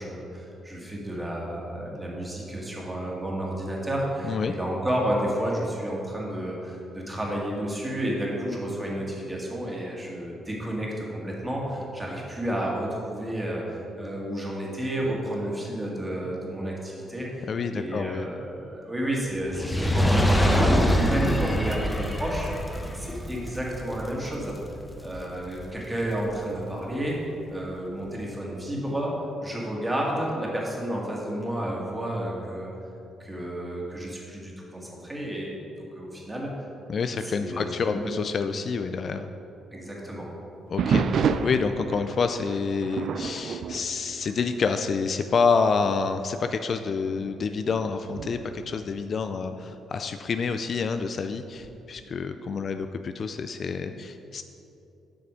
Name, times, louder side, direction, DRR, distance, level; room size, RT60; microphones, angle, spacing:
voice 1, 0.0-22.5 22.9-27.2 27.5-29.1 29.4-32.7 33.2-35.6 36.0-36.5 37.2-38.1 39.7-40.3, right 1 dB, 15° right, -3 dB, 1.9 m, -31 dB
voice 2, 17.5-18.3 36.9-39.3 40.7-54.4, left 5 dB, 50° left, 8 dB, 0.3 m, -28 dB
Fire, 19.4-25.9 26.5-26.6, equal, 10° left, 0.8 m, -25 dB
sound 1, 40.8-44.9 45.2-45.6 46.2-46.3 47.1-49.8 51.6-52.1, right 6 dB, 65° right, 0.4 m, -30 dB
7.8 x 5.8 x 5.1 m, 2.8 s
cardioid pair, 90°, 0 cm